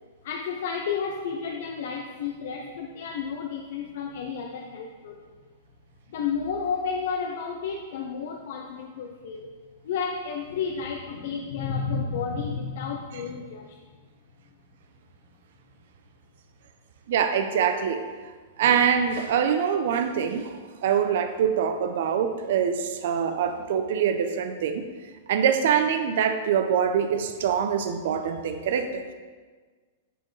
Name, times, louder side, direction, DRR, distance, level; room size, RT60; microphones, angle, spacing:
voice 1, 0.2-5.3 6.1-9.5 9.8-13.8, left 6 dB, 60° left, 2 dB, 0.6 m, -31 dB
voice 2, 17.1-18.0 18.6-24.8 25.3-29.1, right 7 dB, 60° right, 7 dB, 0.5 m, -24 dB
9.9 x 4.4 x 3.2 m, 1.5 s
supercardioid pair, 160°, 0 cm